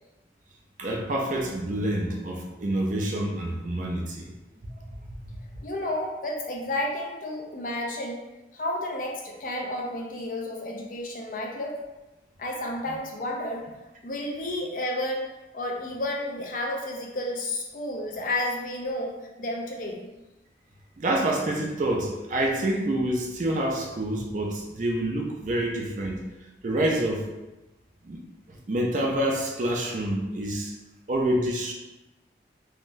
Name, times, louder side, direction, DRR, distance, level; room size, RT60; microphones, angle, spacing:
voice 1, 0.8-4.3 4.8-4.9 12.9-13.0 21.0-26.3 26.6-27.3 28.0-28.2 28.5-30.7 31.1-31.7, right 1 dB, 45° right, 1 dB, 0.4 m, -27 dB
voice 2, 5.6-8.2 8.5-11.8 12.4-13.7 14.0-15.2 15.5-20.1, left 1 dB, 45° left, 0 dB, 0.4 m, -31 dB
3.6 x 2.2 x 2.5 m, 1.0 s
head